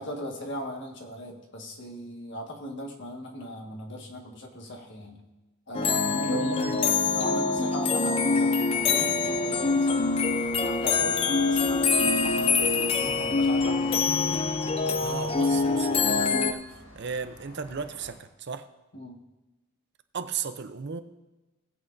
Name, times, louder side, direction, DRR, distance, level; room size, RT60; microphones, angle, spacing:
voice 1, 0.0-5.2 5.7-10.1 10.6-14.1 18.9-19.2, equal, 55° left, 1.6 m, -38 dB
sound 1, 5.7-16.5, left 4 dB, 25° left, 0.4 m, -25 dB
voice 2, 6.2-6.8 15.0-16.6 16.9-18.7 20.1-21.0, right 5 dB, 50° right, 0.6 m, -35 dB
sound 2, 8.7-18.1, equal, 75° left, 4.3 m, -45 dB
19.0 x 8.2 x 2.6 m
head